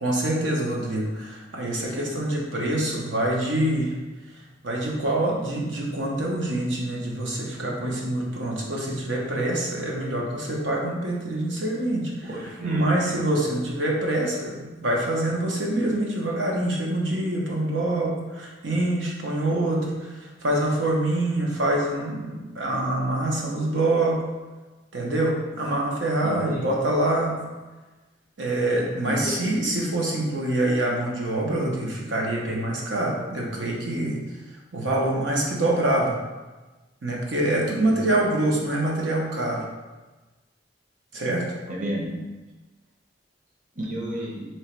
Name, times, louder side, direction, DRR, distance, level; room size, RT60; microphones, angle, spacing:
voice 1, 0.0-4.0 4.6-24.2 24.9-27.4 28.4-34.3 34.7-36.2 37.0-39.7 41.1-41.5, right 1 dB, 90° right, -2 dB, 0.9 m, -25 dB
voice 2, 12.3-12.9 26.2-26.7 29.0-29.4 37.8-38.0 41.7-42.2 43.8-44.4, right 1 dB, 45° right, -2 dB, 0.8 m, -31 dB
3.1 x 3.0 x 4.4 m, 1.2 s
head